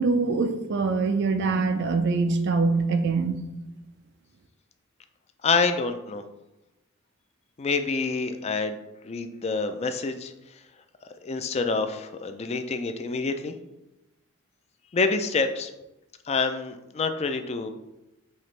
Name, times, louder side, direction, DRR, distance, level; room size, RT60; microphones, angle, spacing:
voice 1, 0.0-3.5, right 4 dB, 50° right, 7 dB, 0.4 m, -24 dB
voice 2, 5.4-6.2 7.6-10.3 11.2-13.6 14.9-15.7 16.3-17.7, left 4 dB, 30° left, 8 dB, 0.3 m, -27 dB
5.6 x 2.9 x 3.2 m, 0.95 s
head